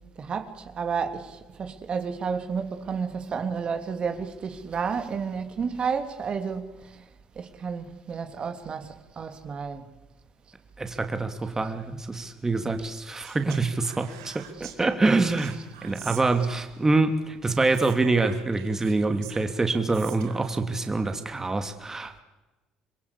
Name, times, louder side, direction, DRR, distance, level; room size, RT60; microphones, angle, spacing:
voice 1, 0.2-6.7 7.4-9.9 12.9-13.0 15.3-15.6 17.5-17.6, right 6 dB, 45° right, 3.1 m, -31 dB
voice 2, 10.8-22.2, right 3 dB, 20° right, 2.8 m, -25 dB
Speech, 13.2-14.8 15.4-16.8 17.6-20.5, right 11 dB, 85° right, 2.8 m, -45 dB
27.5 x 22.5 x 8.5 m
hypercardioid pair, 65°, 2 cm